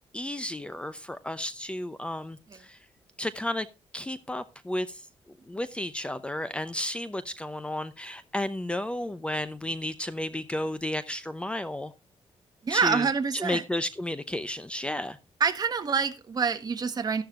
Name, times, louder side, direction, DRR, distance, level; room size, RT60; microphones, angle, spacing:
voice 1, 0.1-2.8 3.2-3.7 3.9-5.1 5.5-11.9 12.7-15.2, left 1 dB, 10° left, 0.7 m, -33 dB
voice 2, 12.6-13.6 15.4-17.2, right 5 dB, 40° right, 1.5 m, -26 dB
13.5 x 11.5 x 2.4 m
wide cardioid pair, 145°, 11 cm